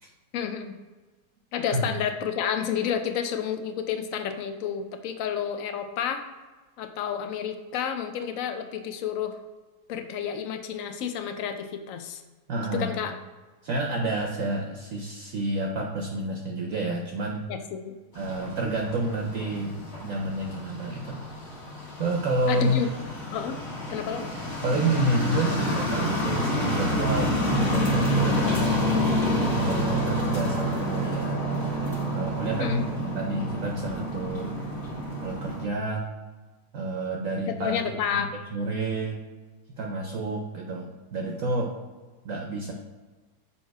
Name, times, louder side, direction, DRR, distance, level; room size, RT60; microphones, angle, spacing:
voice 1, 0.3-0.7 1.5-6.2 6.8-9.4 9.9-12.2 12.7-13.1 17.5-18.0 22.5-22.9 23.3-23.6 23.9-24.3 32.6-32.9 37.5-38.3, left 8 dB, 70° left, 7 dB, 0.8 m, -30 dB
voice 2, 12.5-13.0 13.6-17.4 18.1-21.2 22.0-22.8 23.9-24.0 24.6-28.7 29.3-31.4 32.1-34.6 35.2-36.1 36.7-37.8 38.1-38.2 38.5-39.2 39.8-41.7 42.2-42.7, right 2 dB, 60° right, 1 dB, 1.0 m, -29 dB
sound 1, 18.1-35.6, equal, 40° left, 1.7 m, -28 dB
7.1 x 2.9 x 4.6 m, 1.3 s
omnidirectional pair, 1.9 m